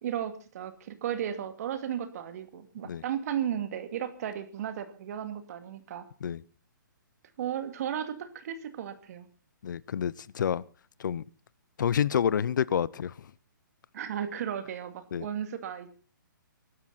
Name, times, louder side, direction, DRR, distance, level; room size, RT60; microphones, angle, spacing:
voice 1, 0.0-6.1 7.4-9.3 13.9-15.9, right 9 dB, 50° right, 2.4 m, -34 dB
voice 2, 9.6-10.6 11.0-11.2 11.8-13.3 15.1-15.3, left 8 dB, 65° left, 0.8 m, -28 dB
23.5 x 12.5 x 4.1 m
hypercardioid pair, 140°, 11 cm